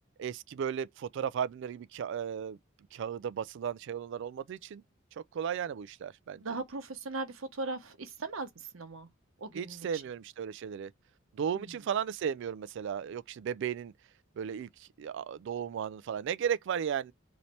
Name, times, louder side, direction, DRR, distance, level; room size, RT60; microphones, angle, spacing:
voice 1, 0.2-2.6 2.9-4.8 5.2-6.4 9.5-10.9 11.3-13.9 14.4-17.1, right 8 dB, 60° right, 0.3 m, -35 dB
voice 2, 6.4-8.5 8.7-9.1 9.4-10.0 11.5-11.8, right 3 dB, 80° right, 0.9 m, -38 dB
3.2 x 2.7 x 4.1 m
head